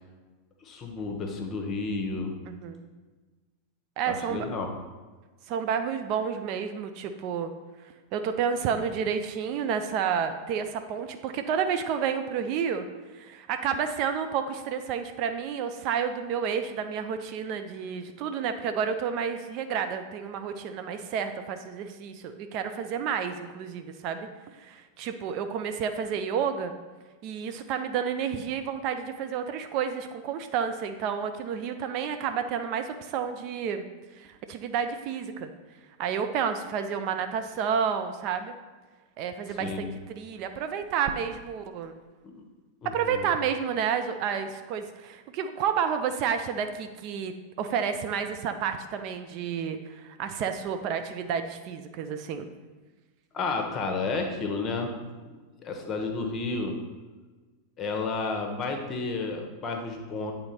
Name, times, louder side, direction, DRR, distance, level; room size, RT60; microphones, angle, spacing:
voice 1, 0.6-2.3 4.1-4.7 39.5-40.0 42.4-42.5 42.8-43.3 53.3-54.9 55.6-56.8 57.8-60.3, left 3 dB, 25° left, 4 dB, 1.0 m, -31 dB
voice 2, 2.5-2.8 4.0-4.5 5.5-7.5 8.1-12.9 13.1-24.3 24.6-26.7 27.2-33.9 34.2-35.5 36.0-38.6 39.2-41.9 42.8-52.5, right 7 dB, 40° right, 8 dB, 0.4 m, -30 dB
8.5 x 3.8 x 4.3 m, 1.3 s
figure-of-eight pair, 90°, 0 cm